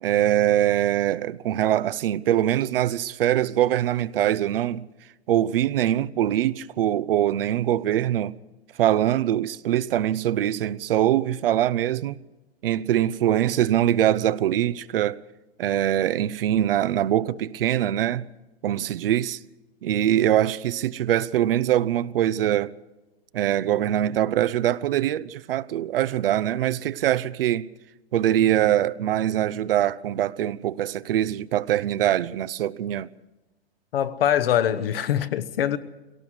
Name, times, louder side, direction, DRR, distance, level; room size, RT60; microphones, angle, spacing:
voice 1, 0.0-4.9 5.3-8.3 8.8-12.2 12.6-15.2 15.6-18.3 18.6-19.4 19.8-22.7 23.3-27.7 28.1-33.1, right 12 dB, 60° right, 0.7 m, -23 dB
voice 2, 33.9-35.8, left 10 dB, 65° left, 1.1 m, -23 dB
23.0 x 18.0 x 6.3 m
hypercardioid pair, 115°, 32 cm